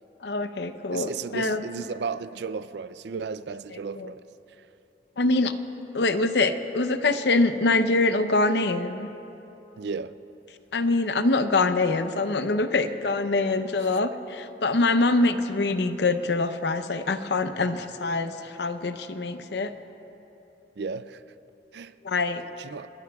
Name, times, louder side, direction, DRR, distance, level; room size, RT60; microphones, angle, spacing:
voice 1, 0.2-1.6 4.0-4.1 5.2-5.5 5.9-9.1 10.7-19.7 22.0-22.4, left 3 dB, 70° left, 0.7 m, -24 dB
voice 2, 0.9-4.2 4.6-4.7 9.8-10.2 20.8-21.3 21.7-21.9 22.6-22.9, right 5 dB, 70° right, 0.4 m, -34 dB
26.0 x 20.5 x 2.4 m
head